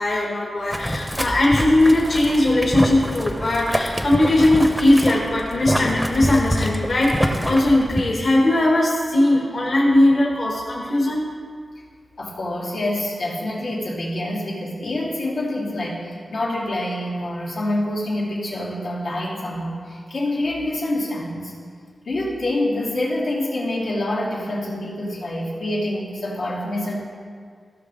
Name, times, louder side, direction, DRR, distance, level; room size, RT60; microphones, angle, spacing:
voice 1, 0.0-11.3, left 1 dB, 50° left, -3 dB, 1.2 m, -19 dB
Boiling, 0.7-8.0, equal, ahead, 0.6 m, -26 dB
voice 2, 12.2-21.5 22.0-27.0, left 1 dB, 90° left, -7 dB, 2.8 m, -26 dB
16.0 x 5.8 x 3.9 m, 2.1 s
wide cardioid pair, 165°, 0 cm